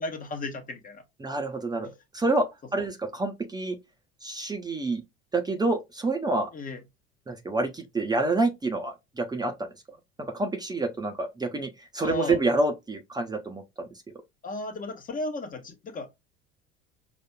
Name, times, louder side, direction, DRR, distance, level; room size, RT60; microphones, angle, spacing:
voice 1, 0.0-1.0 1.8-2.0 2.8-2.9 6.5-6.8 12.0-12.4 14.4-16.1, left 2 dB, 25° left, 1.2 m, -35 dB
voice 2, 1.2-1.9 2.1-3.8 4.2-5.0 5.3-6.5 7.3-9.7 10.2-13.9, right 2 dB, 15° right, 0.9 m, -28 dB
6.0 x 2.6 x 2.2 m
figure-of-eight pair, 65°, 30 cm